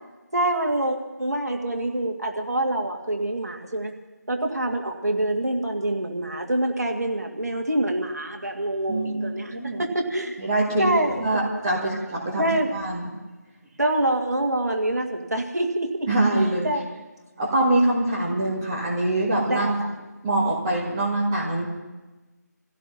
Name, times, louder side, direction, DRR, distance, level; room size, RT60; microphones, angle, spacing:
voice 1, 0.3-3.9 4.3-10.4 10.8-11.4 12.4-12.7 13.8-16.1 16.6-16.8 19.4-19.9, right 1 dB, 60° right, 2 dB, 2.0 m, -26 dB
voice 2, 8.9-9.8 10.4-13.1 16.1-16.7 17.4-19.7 20.2-21.6, right 1 dB, 10° right, -6 dB, 1.9 m, -24 dB
27.5 x 16.0 x 2.8 m, 1.2 s
figure-of-eight pair, 165°, 10 cm